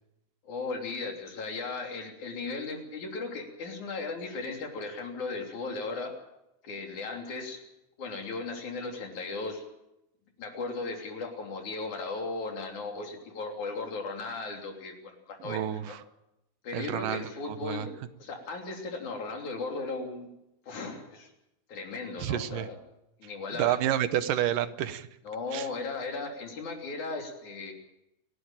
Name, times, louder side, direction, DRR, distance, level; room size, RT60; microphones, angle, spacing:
voice 1, 0.4-6.1 6.6-7.6 8.0-9.6 10.4-16.0 16.6-17.9 18.2-20.3 20.7-21.3 21.7-22.8 23.2-23.8 25.2-27.7, left 3 dB, 65° left, 3 dB, 4.5 m, -36 dB
voice 2, 15.4-16.0 16.7-17.9 22.2-22.7 23.6-25.1 25.5-25.7, right 11 dB, 85° right, 12 dB, 2.6 m, -29 dB
29.0 x 11.5 x 8.9 m, 0.88 s
omnidirectional pair, 3.7 m